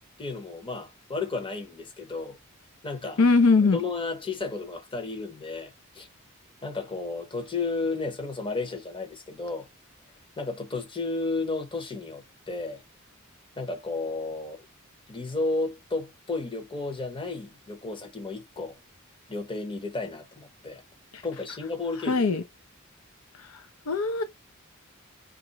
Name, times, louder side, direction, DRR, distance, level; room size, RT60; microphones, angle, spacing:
voice 1, 0.2-2.4 2.8-3.2 3.7-6.1 6.6-9.7 10.4-12.8 13.6-14.6 15.1-18.8 19.3-20.8 21.2-22.2, left 3 dB, 25° left, 0.9 m, -33 dB
voice 2, 3.2-3.8 21.1-21.2 22.1-22.4 23.9-24.2, left 4 dB, 80° left, 0.6 m, -20 dB
2.9 x 2.5 x 4.0 m
head